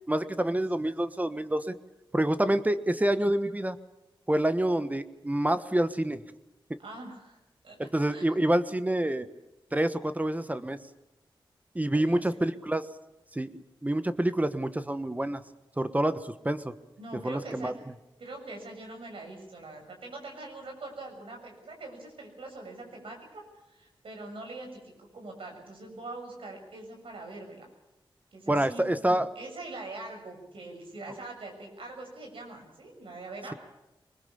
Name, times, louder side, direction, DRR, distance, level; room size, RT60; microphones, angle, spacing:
voice 1, 0.1-1.8 2.1-3.8 4.3-6.2 6.7-6.8 7.8-9.3 9.7-10.8 11.7-12.9 13.3-15.4 15.8-16.7 17.2-17.7 28.5-29.3, right 1 dB, 15° right, 11 dB, 1.3 m, -27 dB
voice 2, 6.8-7.4 7.6-8.4 11.9-12.2 17.0-17.7 18.2-27.7 28.3-33.6, right 2 dB, 80° right, 2 dB, 7.0 m, -43 dB
23.5 x 20.5 x 7.0 m, 0.97 s
cardioid pair, 60°, 9 cm